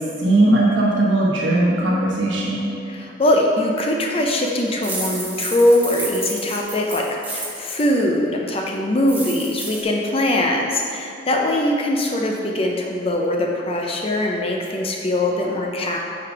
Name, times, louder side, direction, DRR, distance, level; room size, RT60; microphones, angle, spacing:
voice 1, 0.2-2.7, right 2 dB, 75° right, -5 dB, 1.2 m, -18 dB
voice 2, 2.8-16.0, left 1 dB, 30° left, 0 dB, 0.5 m, -21 dB
Playing and dropping Coins, 4.8-7.8 9.0-9.8, right 2 dB, 10° right, 0.7 m, -31 dB
5.7 x 5.1 x 5.1 m, 2.6 s
head